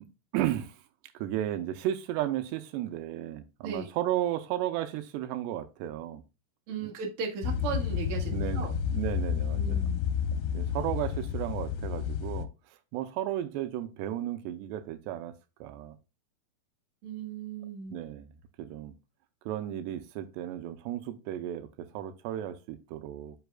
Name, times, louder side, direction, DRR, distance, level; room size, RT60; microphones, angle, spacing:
voice 1, 0.3-0.8 1.1-6.2 6.8-6.9 8.3-9.9 10.5-12.5 12.9-15.3 15.6-16.0 17.9-18.3 18.6-18.9 19.5-23.4, right 12 dB, 85° right, 2.8 m, -34 dB
voice 2, 6.7-8.7 9.5-10.0 17.0-18.0, right 5 dB, 45° right, 2.1 m, -36 dB
sound 1, 7.4-12.5, left 7 dB, 85° left, 2.7 m, -30 dB
8.1 x 6.2 x 2.3 m
omnidirectional pair, 4.9 m